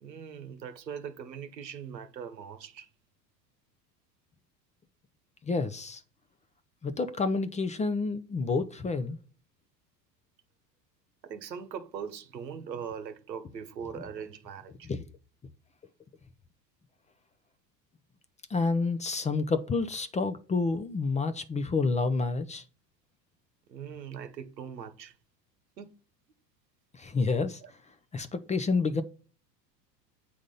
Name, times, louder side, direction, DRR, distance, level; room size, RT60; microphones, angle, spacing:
voice 1, 0.0-2.9 11.2-14.9 23.7-25.1 25.8-25.9 27.6-27.7, right 7 dB, 90° right, 1.0 m, -41 dB
voice 2, 5.4-6.0 6.8-9.2 14.8-15.0 18.5-22.6 27.0-27.6 28.1-29.0, left 4 dB, 15° left, 0.5 m, -29 dB
8.4 x 3.7 x 5.4 m
hypercardioid pair, 80°, 49 cm